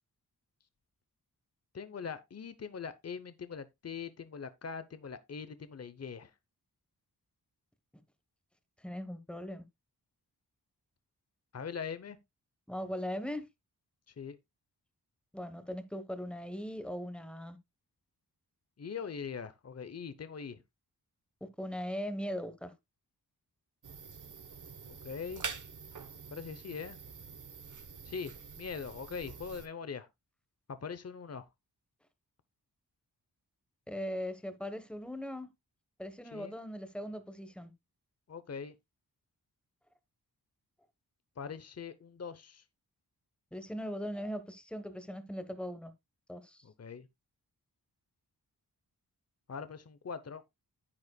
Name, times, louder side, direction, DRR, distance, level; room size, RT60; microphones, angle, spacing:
voice 1, 1.7-6.3 11.5-12.2 14.2-14.4 18.8-20.6 24.9-25.4 26.3-27.0 28.0-30.1 30.7-31.4 36.3-36.5 38.3-38.7 41.4-42.6 46.6-47.1 49.5-50.4, left 6 dB, 40° left, 0.9 m, -42 dB
voice 2, 8.8-9.6 12.7-13.5 15.3-17.6 21.4-22.7 33.9-35.5 36.0-37.7 43.5-45.9 46.3-46.6, equal, 5° left, 1.2 m, -39 dB
sound 1, 23.8-29.7, right 5 dB, 50° right, 1.0 m, -46 dB
9.7 x 9.5 x 2.3 m
wide cardioid pair, 95°, 39 cm